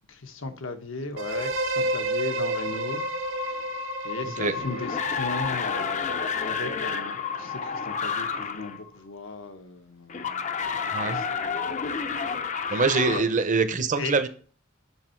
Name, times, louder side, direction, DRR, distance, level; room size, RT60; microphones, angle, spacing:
voice 1, 0.1-3.8 4.0-11.7 12.2-12.8 13.1-13.3 14.0-14.3, left 3 dB, 80° left, 1.2 m, -37 dB
sound 1, 1.2-9.0, equal, 80° right, 1.7 m, -32 dB
sound 2, 4.5-8.8 10.1-13.2, left 5 dB, 35° left, 0.6 m, -30 dB
voice 2, 10.9-11.3 12.7-14.3, right 4 dB, 40° right, 0.7 m, -24 dB
9.6 x 6.5 x 4.5 m
head